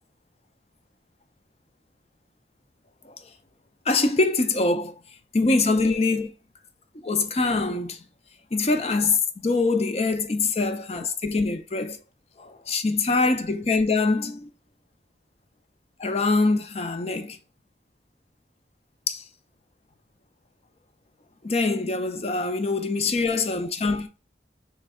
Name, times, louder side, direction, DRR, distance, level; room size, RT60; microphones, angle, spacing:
voice 1, 3.9-5.0 5.3-6.3 7.0-8.0 8.5-12.0 12.4-14.5 16.0-17.4 19.1-19.2 21.4-24.1, left 3 dB, 35° left, 0.5 m, -24 dB
3.3 x 3.2 x 4.7 m
head